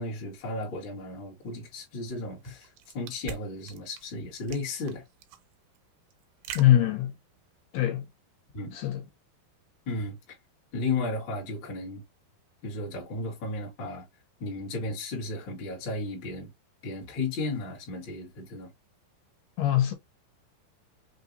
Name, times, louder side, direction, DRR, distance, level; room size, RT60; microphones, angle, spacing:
voice 1, 0.0-2.7 2.9-5.0 8.5-8.7 9.8-10.2 10.7-12.0 12.6-14.1 14.4-16.5 16.8-18.7, left 2 dB, 45° left, 1.7 m, -34 dB
sound 1, 2.4-7.6, right 8 dB, 80° right, 2.2 m, -44 dB
voice 2, 6.5-7.1 7.7-8.1 8.7-9.0 19.6-19.9, left 12 dB, 75° left, 2.8 m, -23 dB
5.9 x 2.8 x 2.6 m
omnidirectional pair, 4.7 m